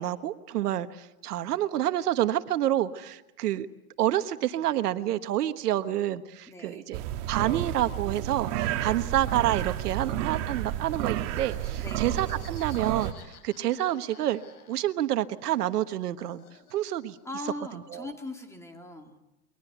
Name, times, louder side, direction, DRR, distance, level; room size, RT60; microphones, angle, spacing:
voice 1, 0.0-3.7 4.0-7.0 7.3-13.1 13.4-14.4 14.7-16.4 16.7-17.2 17.9-18.0, right 13 dB, 80° right, 10 dB, 1.4 m, -28 dB
voice 2, 6.5-6.8 8.8-9.0 11.8-12.1 17.2-19.2, left 2 dB, 5° left, 3 dB, 2.5 m, -40 dB
sound 1, 6.9-13.1, right 12 dB, 50° right, 1.8 m, -31 dB
Laughter, 9.9-15.1 15.4-17.3, left 6 dB, 80° left, 7.1 m, -55 dB
29.0 x 23.0 x 8.1 m, 0.98 s
supercardioid pair, 145°, 45 cm